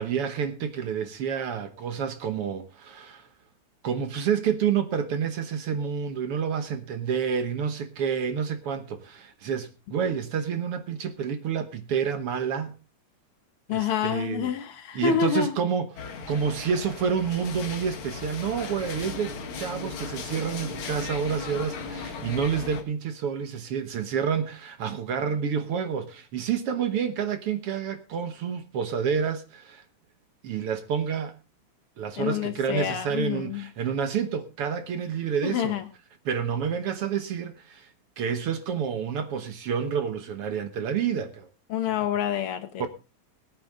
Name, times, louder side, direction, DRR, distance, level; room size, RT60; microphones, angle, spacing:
voice 1, 0.0-3.3 3.8-12.7 13.7-14.5 14.9-16.0 16.3-29.8 30.4-31.3 32.0-35.7 36.2-37.9 38.2-41.5 42.8-42.9, right 7 dB, 65° right, 1.4 m, -29 dB
voice 2, 13.7-15.6 32.2-33.7 35.4-35.8 41.7-42.9, left 8 dB, 90° left, 1.2 m, -27 dB
sound 1, 16.0-22.8, left 5 dB, 50° left, 1.7 m, -37 dB
21.5 x 9.3 x 3.5 m
omnidirectional pair, 4.0 m